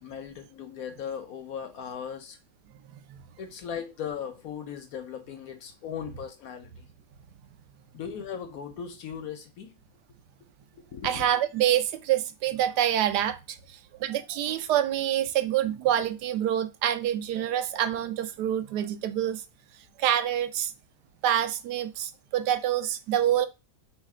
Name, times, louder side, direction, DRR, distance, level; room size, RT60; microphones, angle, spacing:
voice 1, 0.0-2.4 3.4-6.9 7.9-9.7 10.7-11.3 16.0-16.1, left 8 dB, 65° left, 1.1 m, -38 dB
voice 2, 11.0-13.4 14.0-19.4 20.0-20.7 21.2-23.5, right 11 dB, 80° right, 1.1 m, -26 dB
3.2 x 3.2 x 4.8 m
omnidirectional pair, 1.8 m